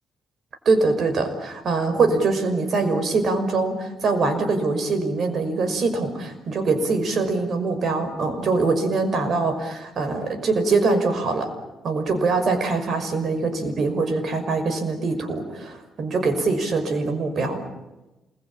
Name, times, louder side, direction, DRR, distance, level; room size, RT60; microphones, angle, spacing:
voice 1, 0.7-11.5 11.8-17.6, right 3 dB, 55° right, 8 dB, 5.7 m, -23 dB
27.5 x 22.0 x 8.8 m, 1.0 s
cardioid pair, 90°, 0 cm